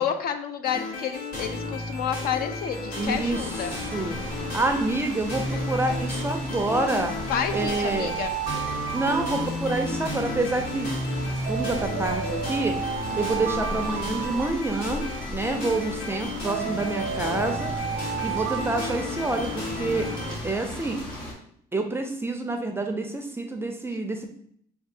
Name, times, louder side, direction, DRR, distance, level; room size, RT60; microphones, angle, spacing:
voice 1, 0.0-3.7 7.3-8.3, left 8 dB, 65° left, 8 dB, 0.5 m, -29 dB
sound 1, 0.6-20.4, left 2 dB, 80° left, 1.5 m, -33 dB
voice 2, 2.9-4.2 4.5-7.1 7.5-8.1 8.9-10.9 11.5-12.8 13.2-17.7 18.2-20.1 20.4-21.0 21.7-24.3, right 2 dB, 15° right, 4 dB, 0.4 m, -27 dB
sound 2, 3.0-21.3, equal, 25° left, 1.6 m, -38 dB
Alarm, 7.5-10.1 11.5-15.1 16.5-19.7, right 9 dB, 80° right, 0.5 m, -33 dB
6.0 x 2.4 x 2.6 m, 0.66 s
cardioid pair, 110°, 17 cm